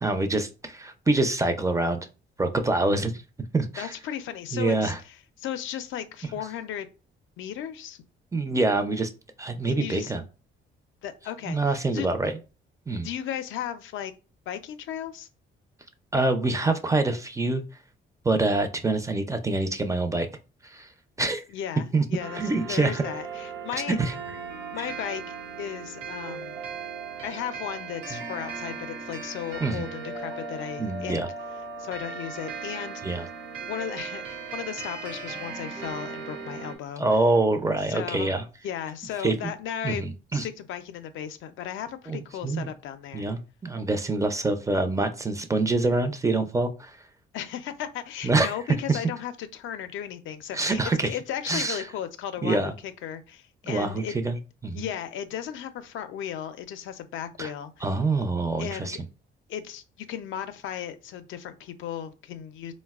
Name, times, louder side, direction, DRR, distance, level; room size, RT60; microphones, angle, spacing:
voice 1, 0.0-2.0 2.4-3.2 3.5-3.9 4.5-5.0 8.3-9.1 9.4-10.2 11.5-12.3 12.9-13.1 16.1-17.6 18.2-20.3 20.6-20.9 21.2-21.4 21.9-22.0 22.3-23.0 24.0-24.1 28.1-28.2 29.6-29.9 30.8-31.3 33.0-33.3 37.0-38.4 39.2-39.5 39.8-40.5 42.1-42.7 43.1-47.0 48.2-48.5 48.9-49.0 50.5-51.1 51.5-51.8 52.4-52.7 53.6-54.4 54.6-54.9 57.4-57.5 57.8-59.0, right 2 dB, 15° right, 0.4 m, -25 dB
voice 2, 3.8-6.9 7.4-8.0 9.6-10.1 11.0-12.1 13.0-14.1 14.5-15.3 21.5-22.4 22.7-24.0 24.7-26.6 27.2-31.3 31.8-33.2 33.7-37.0 37.9-38.4 38.6-40.0 40.3-43.3 47.3-54.2 54.7-57.9 58.6-59.0 59.5-62.7, left 10 dB, 80° left, 0.4 m, -35 dB
sound 1, 22.2-36.8, right 4 dB, 90° right, 0.8 m, -37 dB
3.8 x 2.1 x 2.3 m
cardioid pair, 90°, 20 cm